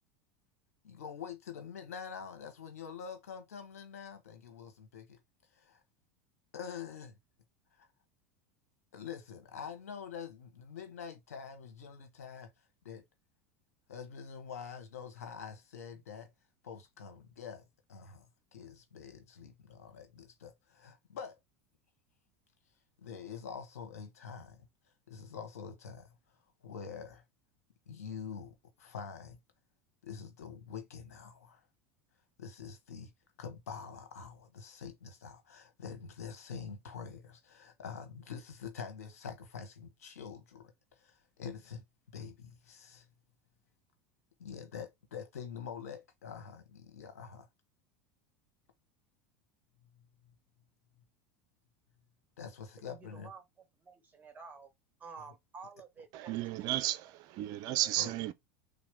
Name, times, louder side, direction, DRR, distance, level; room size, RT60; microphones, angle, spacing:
voice 1, 0.8-5.1 6.5-7.2 7.7-7.9 8.9-12.5 12.8-13.0 13.9-16.3 16.6-21.4 23.0-24.7 25.1-27.2 27.9-29.4 30.0-31.6 32.4-33.1 33.4-41.8 42.1-43.1 44.4-47.5 52.4-53.3 58.0-58.1, left 6 dB, 90° left, 1.2 m, -46 dB
voice 2, 52.8-53.4 53.8-54.7 55.0-56.4 56.6-56.7, right 5 dB, 20° right, 1.4 m, -50 dB
voice 3, 56.1-58.3, right 15 dB, 55° right, 0.5 m, -33 dB
3.4 x 2.7 x 3.5 m
hypercardioid pair, 100°, 8 cm